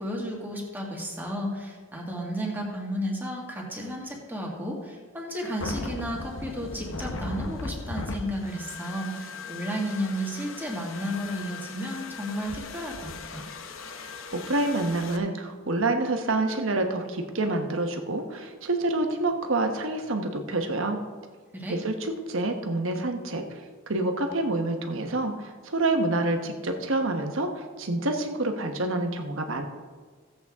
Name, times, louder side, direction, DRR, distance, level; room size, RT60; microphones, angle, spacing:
voice 1, 0.0-13.4 21.5-21.8, equal, 10° right, -2 dB, 1.9 m, -33 dB
sound 1, 5.6-15.2, left 3 dB, 70° left, 0.8 m, -38 dB
voice 2, 13.9-21.0 21.7-29.6, right 2 dB, 65° right, 5 dB, 1.1 m, -28 dB
15.5 x 7.9 x 3.6 m, 1.5 s
head